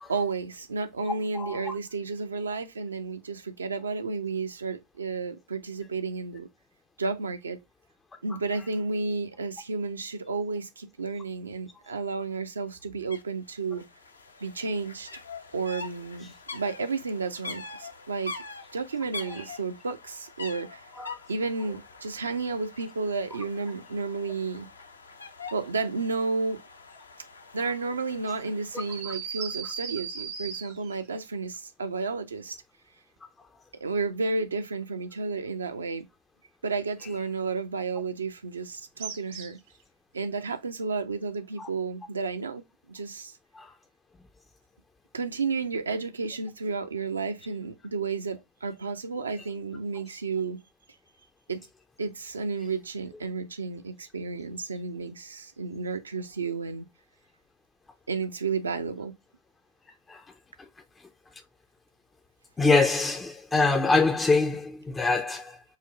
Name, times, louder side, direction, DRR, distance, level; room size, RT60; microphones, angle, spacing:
voice 1, 0.1-6.5 7.0-7.6 8.2-13.8 14.4-15.1 15.5-18.3 18.7-20.9 21.3-24.7 25.5-26.6 27.5-32.6 33.8-36.1 36.6-39.6 40.1-42.6 42.9-43.3 45.1-50.6 51.5-51.6 52.0-56.8 58.1-59.1, right 4 dB, 75° right, 0.5 m, -32 dB
voice 2, 1.3-1.7 19.3-19.4 20.9-21.2 29.0-29.1 41.6-41.7 43.5-43.7 60.1-60.2 62.6-65.6, left 3 dB, 15° left, 0.4 m, -25 dB
sound 1, 13.1-13.2 13.5-29.0, left 4 dB, 75° left, 0.5 m, -44 dB
sound 2, 28.8-31.0 39.0-39.7, right 6 dB, 55° right, 0.9 m, -37 dB
4.9 x 2.1 x 3.9 m
figure-of-eight pair, 90°, 0 cm